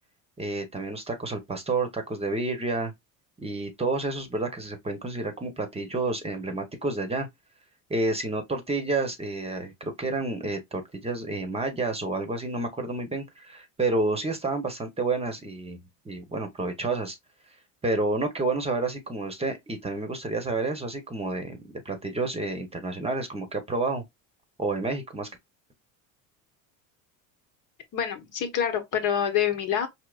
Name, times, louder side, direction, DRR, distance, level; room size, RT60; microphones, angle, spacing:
voice 1, 0.4-2.9 3.4-7.3 7.9-15.8 16.0-17.2 17.8-24.0 24.6-25.3, right 2 dB, 15° right, 0.9 m, -29 dB
voice 2, 27.9-29.9, left 9 dB, 50° left, 1.1 m, -26 dB
4.8 x 2.9 x 2.3 m
supercardioid pair, 115°, 39 cm